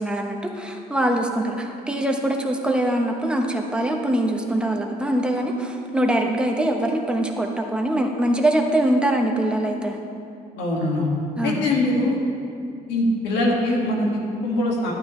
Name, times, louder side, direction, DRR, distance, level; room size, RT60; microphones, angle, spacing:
voice 1, 0.0-10.0 11.4-11.7, right 1 dB, 5° right, 1 dB, 1.0 m, -23 dB
voice 2, 10.6-11.1 11.4-12.2 12.9-14.9, left 1 dB, 90° left, -2 dB, 2.0 m, -22 dB
12.0 x 9.6 x 3.2 m, 2.5 s
cardioid pair, 110°, 17 cm